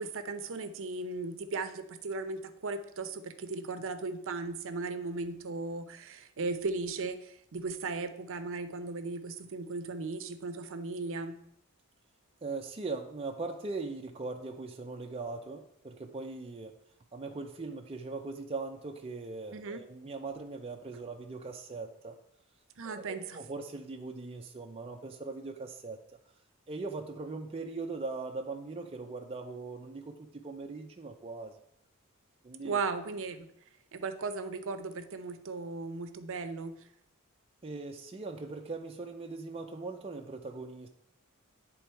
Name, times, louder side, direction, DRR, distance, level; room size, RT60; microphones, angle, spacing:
voice 1, 0.0-11.4 19.5-19.8 22.8-23.4 32.6-33.5 33.9-36.8, right 3 dB, 65° right, 10 dB, 0.7 m, -37 dB
voice 2, 12.4-16.7 17.1-22.2 22.8-26.0 26.7-31.5 32.4-32.8 37.6-40.9, right 3 dB, 25° right, 2 dB, 0.5 m, -40 dB
9.2 x 3.8 x 4.5 m, 0.73 s
head